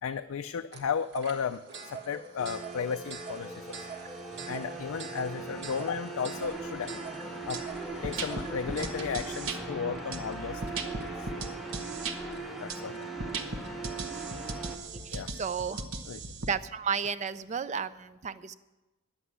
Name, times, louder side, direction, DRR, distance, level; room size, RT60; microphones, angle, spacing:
voice 1, 0.0-3.8 4.5-7.0 7.5-7.6 8.0-11.5 12.6-13.5 15.1-15.3 15.7-16.2, left 6 dB, 70° left, 8 dB, 0.4 m, -35 dB
sound 1, 0.7-15.5, right 4 dB, 50° right, 1.6 m, -46 dB
sound 2, 2.4-14.8, right 3 dB, ahead, 1.1 m, -40 dB
sound 3, 7.5-7.6 8.0-9.6 10.1-12.2 12.7-12.8 13.2-16.5, right 3 dB, 70° right, 1.1 m, -37 dB
voice 2, 15.1-15.8 16.4-18.5, right 6 dB, 30° right, 15 dB, 0.4 m, -33 dB
10.5 x 8.0 x 9.6 m, 1.1 s
head